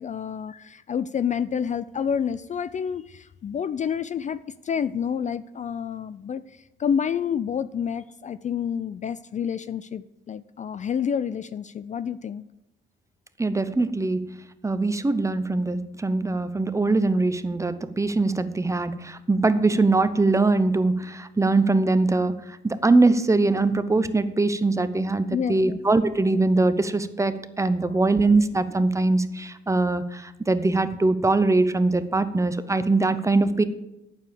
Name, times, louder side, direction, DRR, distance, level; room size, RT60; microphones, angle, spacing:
voice 1, 0.0-12.4 25.3-25.8 27.8-28.0, left 7 dB, 40° left, 15 dB, 0.4 m, -29 dB
voice 2, 13.4-14.3 14.6-22.3 22.6-33.6, right 3 dB, 15° right, 12 dB, 0.7 m, -22 dB
8.9 x 7.1 x 6.8 m, 0.91 s
cardioid pair, 90°, 20 cm